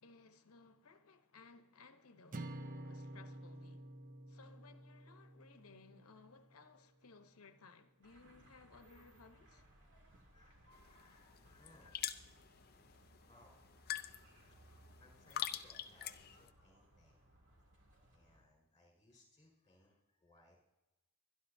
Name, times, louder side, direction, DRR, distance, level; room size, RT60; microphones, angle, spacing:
voice 1, 0.0-3.9 4.3-9.6 11.8-11.9 12.8-13.1, left 4 dB, 75° left, 1.0 m, -61 dB
sound 1, 2.3-6.7, right 1 dB, 35° right, 0.6 m, -50 dB
sound 2, 8.0-18.4, right 1 dB, 55° right, 2.9 m, -65 dB
voice 2, 10.3-12.1 13.3-13.5 13.9-17.3 18.1-20.6, left 1 dB, 20° left, 5.1 m, -67 dB
sound 3, 10.7-16.5, left 10 dB, 45° left, 0.6 m, -46 dB
24.5 x 11.0 x 2.7 m
head